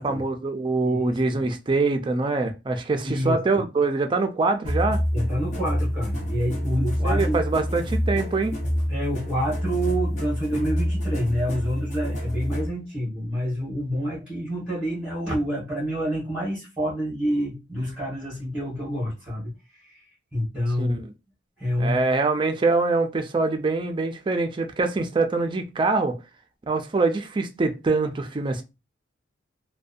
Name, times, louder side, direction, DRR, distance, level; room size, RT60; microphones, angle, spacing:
voice 1, 0.0-5.0 7.0-8.5 20.8-21.0 21.8-26.2 26.7-28.6, right 3 dB, 25° right, 0.3 m, -24 dB
voice 2, 0.8-1.2 3.0-3.4 5.1-7.4 8.9-20.0 20.3-21.0 21.6-22.1, equal, 5° right, 1.0 m, -28 dB
sound 1, 4.6-12.7, equal, 40° left, 0.7 m, -27 dB
2.6 x 2.1 x 2.4 m
head